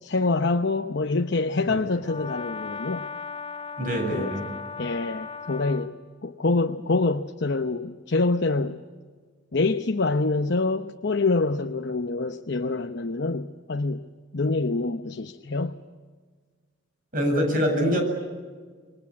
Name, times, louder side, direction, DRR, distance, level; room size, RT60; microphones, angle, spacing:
voice 1, 0.0-3.1 4.1-4.3 4.8-8.8 9.5-14.1 14.3-15.8, left 3 dB, 60° left, 0.9 m, -26 dB
Brass instrument, 2.0-5.9, left 5 dB, 30° left, 1.3 m, -37 dB
voice 2, 3.8-4.5 17.1-18.0, equal, 45° right, 7.8 m, -24 dB
28.5 x 23.0 x 8.5 m
head